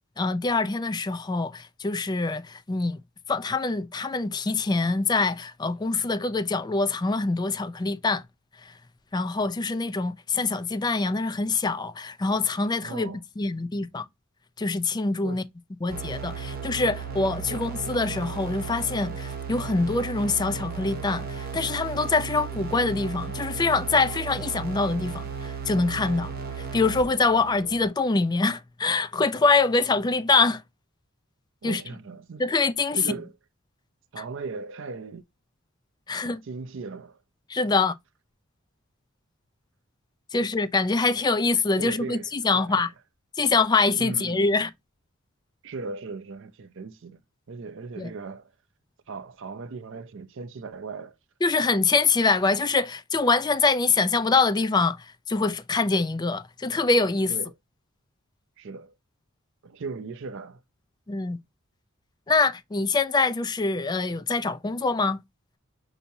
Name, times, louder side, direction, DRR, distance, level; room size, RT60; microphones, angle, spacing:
voice 1, 0.2-3.0 3.3-8.2 8.6-8.7 9.1-13.1 13.4-14.1 14.6-15.4 15.8-30.6 31.6-31.8 32.4-33.0 36.1-36.4 37.5-37.9 40.3-42.9 43.4-44.7 48.0-48.1 51.4-57.3 61.1-61.4 62.3-65.2, left 3 dB, 20° left, 0.4 m, -24 dB
voice 2, 12.8-13.2 15.2-15.4 31.6-32.4 32.9-33.3 34.1-35.2 36.2-37.2 41.8-42.3 42.5-42.8 44.0-44.6 45.6-47.2 47.5-48.5 49.1-51.2 57.3-57.5 58.6-58.9 59.6-60.6, right 4 dB, 65° right, 0.5 m, -37 dB
sound 1, 15.9-27.9, right 5 dB, 45° right, 1.0 m, -35 dB
5.4 x 2.8 x 2.6 m
head